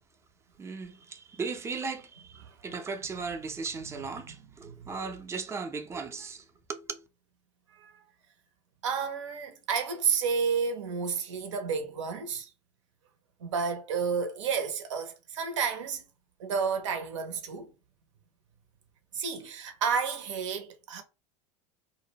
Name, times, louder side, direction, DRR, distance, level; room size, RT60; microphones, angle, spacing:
voice 1, 0.6-7.0, right 4 dB, 15° right, 0.4 m, -37 dB
voice 2, 8.8-12.5 13.4-16.0 16.4-17.7 19.1-21.0, right 6 dB, 80° right, 0.6 m, -31 dB
2.5 x 2.1 x 2.8 m
hypercardioid pair, 90°, 16 cm